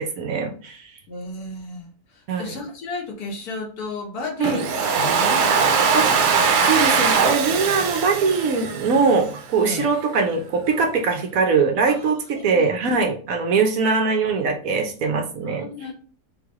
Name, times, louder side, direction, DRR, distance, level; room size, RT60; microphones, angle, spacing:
voice 1, 0.0-0.9 2.3-2.5 4.4-4.6 5.9-6.3 6.6-15.6, right 4 dB, 65° right, 4 dB, 1.1 m, -22 dB
voice 2, 1.1-6.2 9.6-9.9 11.9-12.7 15.4-15.9, left 3 dB, 70° left, 2 dB, 1.6 m, -34 dB
Domestic sounds home sounds, 4.4-9.4, right 5 dB, 80° right, 1.3 m, -20 dB
3.8 x 3.2 x 3.6 m, 0.41 s
omnidirectional pair, 1.7 m